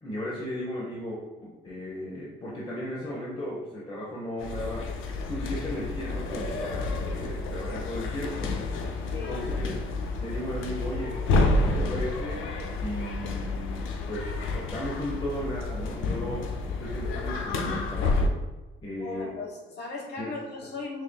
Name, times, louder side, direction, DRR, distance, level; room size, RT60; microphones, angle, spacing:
voice 1, 0.0-4.9 5.2-8.5 9.3-9.7 10.2-11.2 11.6-12.4 12.7-18.3 18.8-19.3 20.2-20.3, equal, 25° left, -5 dB, 0.9 m, -36 dB
sound 1, 4.4-18.3, left 2 dB, 85° left, 0.5 m, -29 dB
voice 2, 9.1-9.5 18.9-21.0, left 3 dB, 55° left, -1 dB, 1.1 m, -37 dB
6.2 x 2.5 x 2.2 m, 1.1 s
cardioid pair, 90°, 20 cm